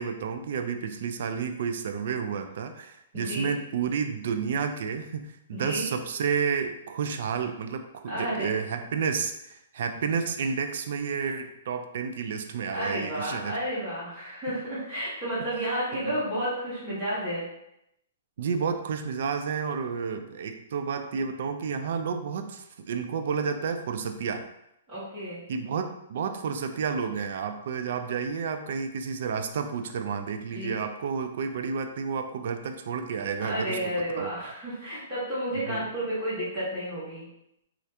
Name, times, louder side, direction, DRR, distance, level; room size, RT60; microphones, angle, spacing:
voice 1, 0.0-13.6 15.9-16.0 18.4-24.5 25.5-34.5 35.5-35.8, right 6 dB, 55° right, 7 dB, 0.3 m, -31 dB
voice 2, 3.1-3.5 5.5-5.9 8.0-8.5 12.7-17.5 24.9-25.4 30.5-30.8 33.4-37.3, equal, 10° right, -14 dB, 1.3 m, -31 dB
2.7 x 2.4 x 3.3 m, 0.82 s
hypercardioid pair, 165°, 0 cm